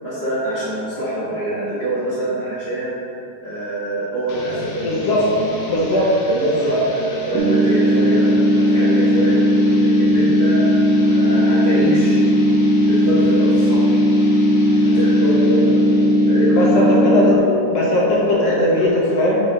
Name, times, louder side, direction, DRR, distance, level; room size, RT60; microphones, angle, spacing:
voice 1, 0.0-2.9 3.4-5.8 6.3-9.4 9.8-10.6 11.0-12.2 12.8-13.9 14.8-17.0 17.3-17.4 18.2-18.9, right 1 dB, 45° right, -12 dB, 0.7 m, -25 dB
sound 1, 4.3-17.1, left 2 dB, 90° left, 1.2 m, -36 dB
voice 2, 4.8-5.3 5.7-6.1 16.5-17.3 17.7-19.4, left 1 dB, 70° left, -4 dB, 1.6 m, -18 dB
sound 2, 7.3-17.4, equal, 80° right, 1.7 m, -16 dB
5.0 x 4.2 x 5.1 m, 2.7 s
omnidirectional pair, 3.4 m